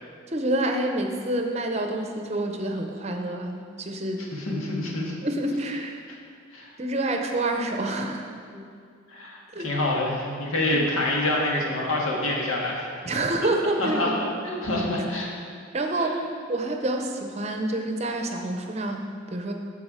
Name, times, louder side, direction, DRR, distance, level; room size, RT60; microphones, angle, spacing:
voice 1, 0.3-4.2 5.2-6.0 6.8-8.3 9.5-9.8 10.7-10.9 13.0-14.2 15.7-16.2 16.5-19.5, right 1 dB, 30° right, 3 dB, 0.7 m, -28 dB
voice 2, 4.3-5.1 6.1-6.2 6.5-6.7 8.5-8.6 9.1-12.9 13.8-14.1 14.4-15.3 16.0-16.1, left 1 dB, 85° left, -2 dB, 1.7 m, -27 dB
14.0 x 4.7 x 4.9 m, 2.2 s
head